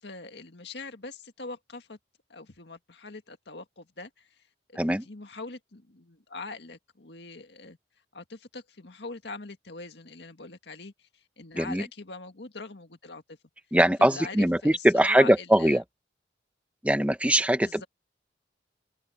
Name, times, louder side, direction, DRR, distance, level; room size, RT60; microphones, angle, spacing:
voice 1, 0.0-2.0 2.3-4.3 4.7-7.8 8.1-13.4 14.0-15.8 17.6-17.9, left 3 dB, 70° left, 1.9 m, -42 dB
voice 2, 4.8-5.1 11.5-11.8 13.7-15.8 16.8-17.8, right 1 dB, 5° right, 1.3 m, -22 dB
open air
head